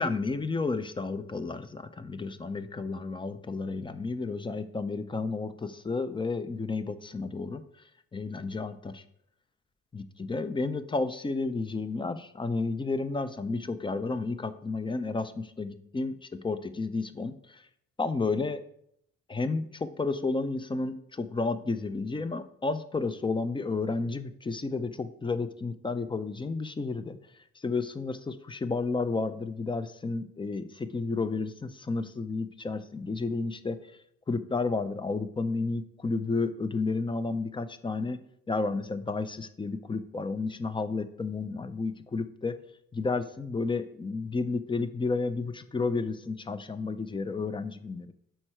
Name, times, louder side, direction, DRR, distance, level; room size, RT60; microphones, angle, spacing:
voice 1, 0.0-7.6 8.1-9.0 9.9-17.7 18.0-18.6 19.3-27.2 27.6-34.0 34.3-38.2 38.5-42.6 42.9-48.1, left 3 dB, 15° left, 12 dB, 0.4 m, -32 dB
6.4 x 4.5 x 4.4 m, 0.73 s
cardioid pair, 90°, 30 cm